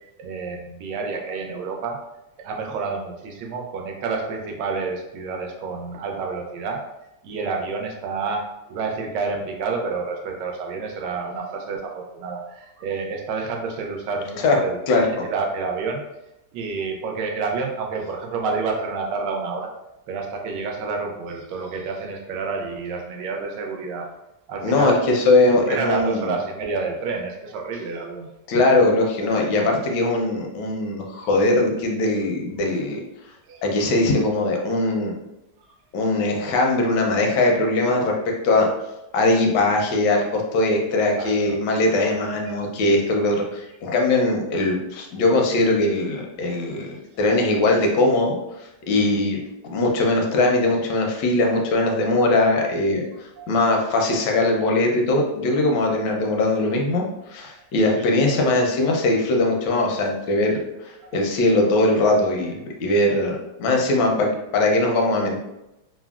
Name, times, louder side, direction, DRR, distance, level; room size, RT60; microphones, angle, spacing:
voice 1, 0.0-2.0 2.4-6.8 7.2-8.4 8.7-16.0 16.5-19.7 20.1-24.1 24.5-25.0 25.5-28.3 33.5-33.6 41.2-41.6 42.5-42.6 53.4-53.5 58.0-58.3 61.0-61.2 62.9-63.0, right 4 dB, 80° right, 1 dB, 1.2 m, -29 dB
voice 2, 24.6-26.3 28.5-33.0 33.6-35.1 35.9-38.1 38.4-38.7 39.1-48.4 48.9-49.4 49.6-53.0 53.5-65.4, left 2 dB, 80° left, 1 dB, 1.2 m, -20 dB
3.5 x 2.0 x 2.3 m, 0.91 s
omnidirectional pair, 1.9 m